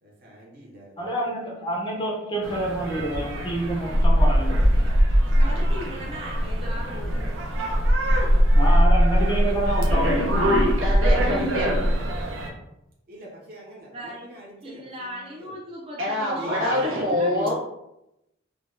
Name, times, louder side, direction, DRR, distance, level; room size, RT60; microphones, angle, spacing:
voice 1, 0.0-1.1 5.3-5.8 13.1-15.5 16.3-17.1, right 1 dB, 45° right, -4 dB, 0.9 m, -43 dB
voice 2, 1.0-4.7 8.6-10.4 16.6-17.5, right 1 dB, 25° left, -2 dB, 0.5 m, -28 dB
sound 1, 2.4-12.5, equal, 75° right, 0.7 m, -21 dB
voice 3, 5.4-7.4 13.9-14.3 14.6-17.5, equal, 30° right, -5 dB, 0.4 m, -37 dB
voice 4, 10.8-11.7 16.0-17.5, left 1 dB, 90° right, -5 dB, 1.2 m, -25 dB
3.7 x 2.2 x 2.5 m, 0.87 s
head